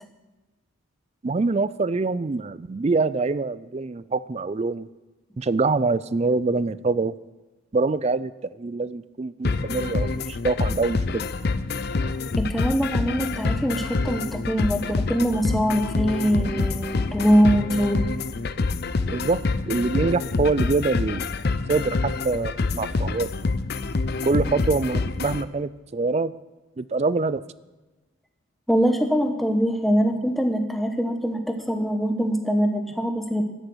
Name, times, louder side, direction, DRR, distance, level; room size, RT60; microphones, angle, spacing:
voice 1, 1.2-4.9 5.4-7.1 7.7-8.3 8.6-11.3 19.1-21.3 21.7-23.3 24.2-26.3 26.8-27.4, right 3 dB, 30° right, 17 dB, 0.3 m, -25 dB
sound 1, 9.4-25.4, left 3 dB, 50° left, 0.5 m, -26 dB
voice 2, 12.4-18.1 28.7-33.4, equal, ahead, 5 dB, 1.1 m, -23 dB
13.0 x 9.9 x 6.3 m, 1.2 s
head